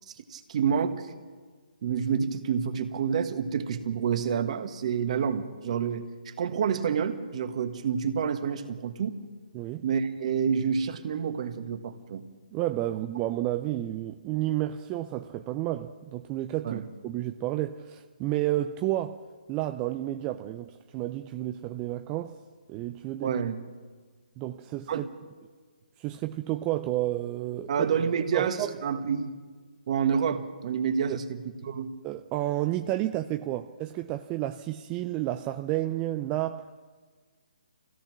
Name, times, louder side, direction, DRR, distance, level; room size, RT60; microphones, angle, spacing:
voice 1, 0.1-1.1 1.8-9.2 9.8-12.2 16.6-16.9 23.2-23.6 24.9-25.0 27.7-29.3 29.9-31.9, right 7 dB, 45° right, 1.6 m, -28 dB
voice 2, 9.5-9.8 12.5-19.2 19.5-22.4 22.7-23.4 24.4-25.1 26.0-27.7 28.3-28.7 31.1-31.2 32.0-36.7, right 14 dB, 20° right, 0.5 m, -31 dB
25.0 x 17.0 x 6.1 m
figure-of-eight pair, 145°, 5 cm